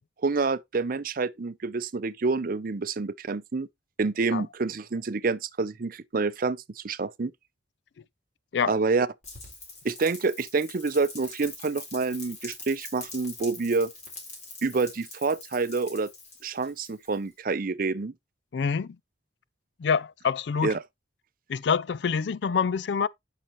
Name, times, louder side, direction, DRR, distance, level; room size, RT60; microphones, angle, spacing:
voice 1, 0.2-3.7 4.0-7.3 8.7-9.1 9.8-13.9 14.6-16.1 16.4-18.1 20.6-20.8, right 4 dB, 50° right, 0.6 m, -27 dB
Rain, 9.2-17.3, left 3 dB, 40° left, 4.0 m, -44 dB
voice 2, 18.5-18.9 19.8-20.7 21.5-23.1, left 6 dB, 65° left, 0.4 m, -26 dB
10.0 x 5.8 x 3.0 m
head